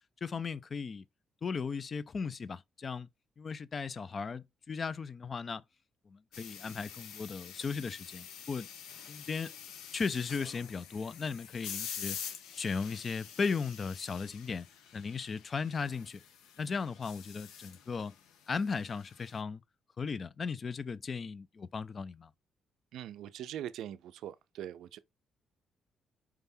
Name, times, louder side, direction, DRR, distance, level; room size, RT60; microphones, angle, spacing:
voice 1, 0.2-1.1 1.4-3.1 3.4-5.6 6.1-8.7 9.1-9.5 9.9-12.2 12.5-14.7 14.9-16.2 16.6-18.1 18.5-19.6 20.0-22.3, left 5 dB, 40° left, 0.4 m, -36 dB
sound 1, 6.3-19.4, left 8 dB, 90° left, 0.6 m, -47 dB
voice 2, 22.9-25.0, right 11 dB, 80° right, 0.3 m, -42 dB
4.7 x 3.4 x 2.6 m
cardioid pair, 90°, 0 cm